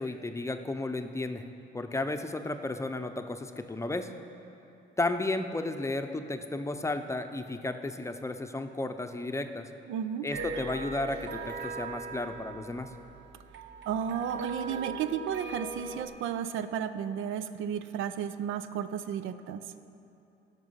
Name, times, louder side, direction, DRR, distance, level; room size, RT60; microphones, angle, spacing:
voice 1, 0.0-1.4 1.7-4.1 5.0-9.7 10.2-12.9, left 2 dB, 15° left, 7 dB, 0.6 m, -33 dB
voice 2, 9.9-10.3 13.9-19.7, right 8 dB, 85° right, 12 dB, 0.5 m, -33 dB
sound 1, 10.3-16.0, right 3 dB, 65° right, 0.9 m, -40 dB
15.5 x 6.1 x 5.6 m, 2.8 s
cardioid pair, 90°, 20 cm